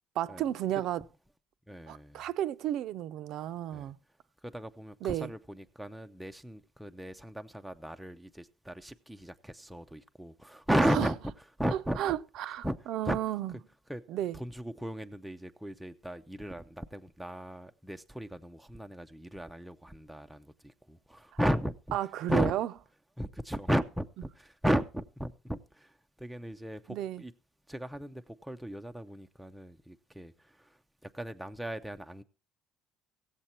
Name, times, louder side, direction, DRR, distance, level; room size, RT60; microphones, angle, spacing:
voice 1, 0.2-1.0 1.9-4.0 5.0-5.3 10.8-11.1 12.0-13.5 14.1-14.4 21.9-22.7 26.9-27.2, right 12 dB, 60° right, 0.5 m, -33 dB
voice 2, 1.7-2.2 3.7-3.9 4.4-11.2 11.6-12.0 12.6-12.8 13.0-13.2 13.9-14.0 14.3-22.0 22.3-22.5 23.2-25.9 26.2-27.3 27.7-30.3 31.0-32.2, equal, ahead, 0.5 m, -35 dB
16.5 x 7.4 x 4.3 m
cardioid pair, 150°, 0 cm